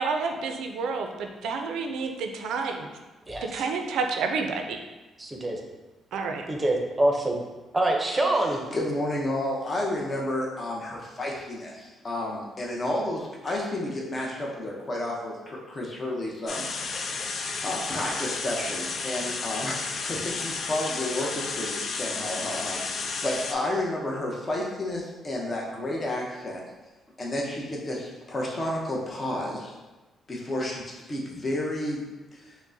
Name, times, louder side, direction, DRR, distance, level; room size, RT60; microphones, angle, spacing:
voice 1, 0.0-2.9 3.5-4.8 6.1-6.4, right 4 dB, 80° right, 4 dB, 0.4 m, -29 dB
voice 2, 3.3-3.6 5.2-5.6 6.5-7.3 7.7-8.6, right 1 dB, 20° right, 1 dB, 0.6 m, -25 dB
voice 3, 8.7-17.3 17.6-26.6 27.2-29.7 30.3-32.0 32.3-32.5, left 1 dB, 30° left, -3 dB, 0.7 m, -31 dB
sound 1, 16.5-23.5, left 4 dB, 55° left, 0.4 m, -32 dB
5.7 x 2.1 x 2.6 m, 1.1 s
cardioid pair, 90°, 0 cm